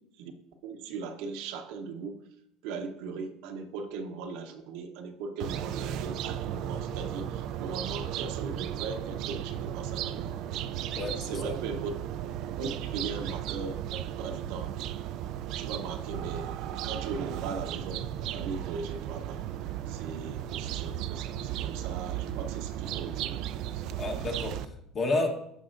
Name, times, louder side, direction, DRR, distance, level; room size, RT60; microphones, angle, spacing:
voice 1, 0.6-2.3 2.6-10.3 11.2-11.9 12.6-14.7 15.5-19.4 19.9-23.4 23.7-24.2, right 4 dB, 70° right, 4 dB, 0.9 m, -39 dB
sound 1, 5.4-24.6, right 11 dB, 50° right, 0.4 m, -35 dB
voice 2, 10.9-11.6 24.0-25.3, left 2 dB, 25° left, 3 dB, 1.2 m, -31 dB
15.5 x 5.4 x 2.5 m, 0.79 s
cardioid pair, 170°, 0 cm